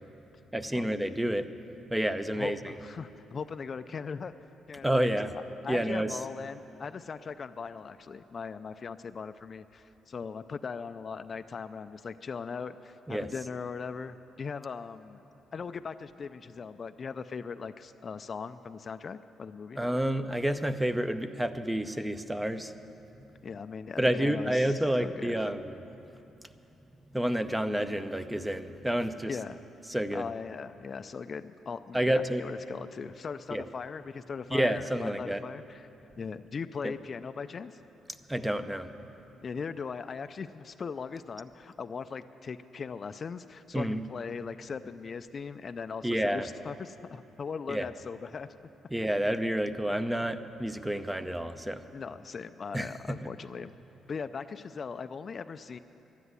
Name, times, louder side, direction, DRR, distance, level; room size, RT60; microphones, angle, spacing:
voice 1, 0.5-1.5 1.9-2.7 4.8-5.3 5.7-6.2 13.1-13.3 19.8-22.7 24.0-25.8 27.1-29.3 29.9-30.2 31.9-32.4 33.5-33.6 34.5-35.4 36.8-36.9 38.3-38.9 43.7-44.0 46.0-46.5 47.7-47.9 48.9-51.8 52.7-53.2, right 1 dB, 10° right, 10 dB, 0.6 m, -29 dB
voice 2, 2.3-4.3 4.7-5.1 5.3-15.2 15.5-19.8 23.4-25.5 29.3-29.6 30.1-35.9 36.2-37.8 39.4-48.5 51.9-53.7 54.1-55.8, left 5 dB, 45° left, 11 dB, 0.4 m, -39 dB
12.0 x 10.0 x 9.6 m, 2.9 s
cardioid pair, 90°, 0 cm